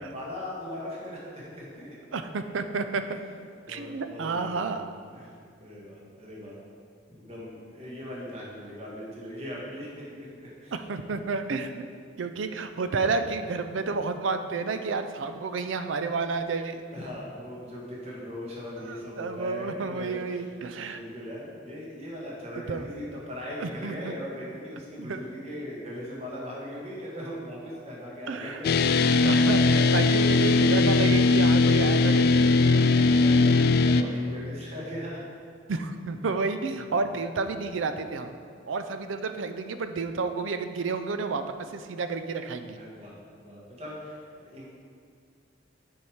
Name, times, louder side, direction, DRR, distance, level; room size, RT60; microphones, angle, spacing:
voice 1, 0.0-2.0 3.6-5.3 5.6-6.6 7.1-10.7 16.9-20.5 20.9-29.0 32.6-35.2 36.9-37.1 42.7-43.2 43.4-44.6, equal, 35° right, -5 dB, 1.6 m, -39 dB
voice 2, 2.1-3.2 3.7-4.9 10.7-11.8 12.2-16.8 18.8-21.0 22.7-23.3 23.6-24.1 25.0-25.2 28.3-28.6 29.2-32.5 35.7-38.4 38.7-42.8, right 4 dB, 90° right, 9 dB, 0.5 m, -31 dB
sound 1, 28.6-34.0, left 3 dB, 55° left, 0.3 m, -20 dB
7.0 x 4.7 x 4.9 m, 2.1 s
head